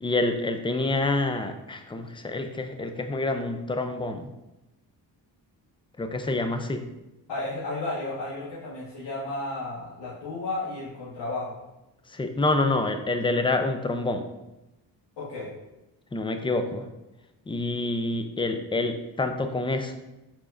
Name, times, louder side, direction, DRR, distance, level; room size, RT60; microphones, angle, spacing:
voice 1, 0.0-4.3 6.0-6.8 12.1-14.2 16.1-16.9 17.5-19.9, left 2 dB, 15° left, 7 dB, 0.4 m, -27 dB
voice 2, 7.3-11.6 15.2-15.5, left 2 dB, 75° left, -10 dB, 1.5 m, -33 dB
4.7 x 4.2 x 2.5 m, 0.95 s
cardioid pair, 80°, 42 cm